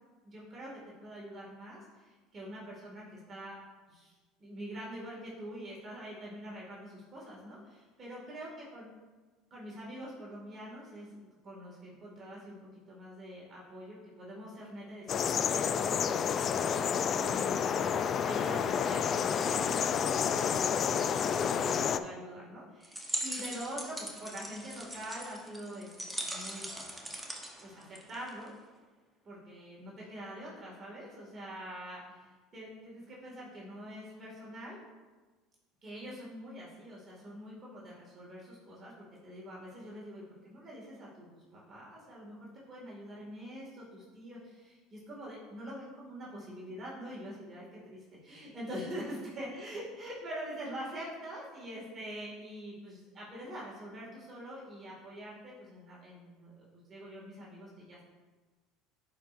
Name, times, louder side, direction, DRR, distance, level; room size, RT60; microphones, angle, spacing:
voice 1, 0.2-0.7 1.0-3.5 3.9-4.1 4.4-8.9 9.5-11.2 11.4-26.7 27.6-28.5 29.2-34.8 35.8-58.0, equal, 35° right, -5 dB, 2.0 m, -45 dB
sound 1, 15.1-22.0, left 7 dB, 40° left, 0.3 m, -29 dB
sound 2, 22.8-28.5, right 1 dB, 5° right, 1.0 m, -40 dB
10.5 x 4.5 x 2.5 m, 1.3 s
supercardioid pair, 90°, 0 cm